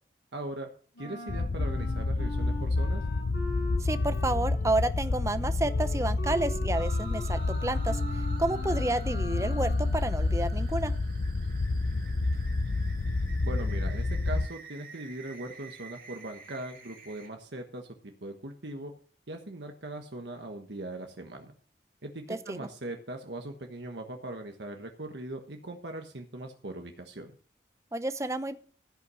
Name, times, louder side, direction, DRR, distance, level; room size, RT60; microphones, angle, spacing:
voice 1, 0.3-0.7 1.0-3.0 13.4-18.9 19.3-21.5 22.0-27.3, right 1 dB, 80° right, 3 dB, 1.3 m, -40 dB
Wind instrument woodwind instrument, 0.9-10.0, left 1 dB, 85° left, 5.4 m, -43 dB
sound 1, 1.3-14.5, left 2 dB, 65° left, 0.5 m, -29 dB
voice 2, 3.8-10.9 22.3-22.7 27.9-28.6, right 2 dB, 15° right, 11 dB, 0.7 m, -30 dB
sound 2, 6.7-17.3, right 5 dB, 50° right, 2.3 m, -49 dB
15.5 x 5.9 x 6.2 m, 0.43 s
head